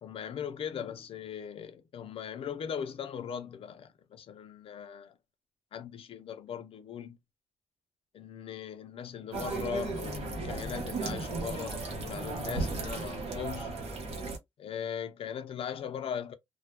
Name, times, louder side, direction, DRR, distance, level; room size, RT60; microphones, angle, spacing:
voice 1, 0.0-5.1 5.7-7.2 8.1-13.7 14.6-16.3, left 8 dB, 65° left, 0.5 m, -39 dB
sound 1, 9.3-14.4, right 3 dB, 85° right, 0.8 m, -35 dB
2.2 x 2.1 x 2.9 m
wide cardioid pair, 140°, 10 cm